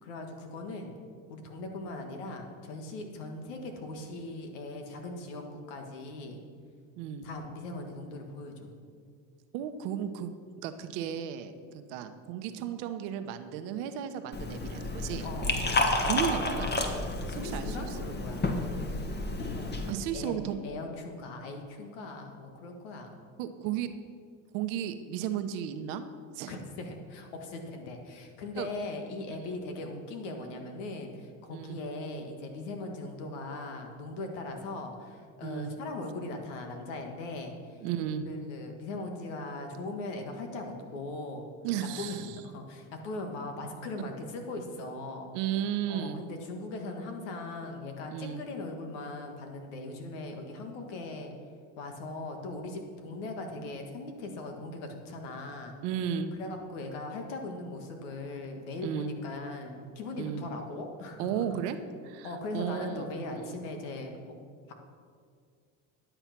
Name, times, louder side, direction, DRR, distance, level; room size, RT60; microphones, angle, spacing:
voice 1, 0.0-1.0 1.3-6.4 7.2-8.7 15.2-16.0 17.3-18.5 19.5-19.8 20.1-23.1 26.5-37.8 38.3-41.5 42.0-45.3 45.9-51.3 51.8-55.8 56.4-61.5 62.2-64.3 64.7-64.8, left 2 dB, 90° left, 4 dB, 1.8 m, -39 dB
voice 2, 7.0-7.3 9.5-10.3 10.6-15.3 16.0-16.7 17.4-17.9 19.9-20.6 23.4-23.9 24.5-26.0 26.3-26.5 28.6-28.7 31.5-31.8 35.4-35.7 37.8-38.3 41.6-42.4 45.3-46.2 48.1-48.4 55.8-56.3 58.8-59.1 60.2-60.4 61.2-61.8 62.0-63.1 63.4-63.6, right 9 dB, 85° right, 9 dB, 1.0 m, -34 dB
Liquid, 14.3-19.9, left 2 dB, 30° left, 1.7 m, -31 dB
11.5 x 8.0 x 6.0 m, 2.1 s
supercardioid pair, 90°, 35 cm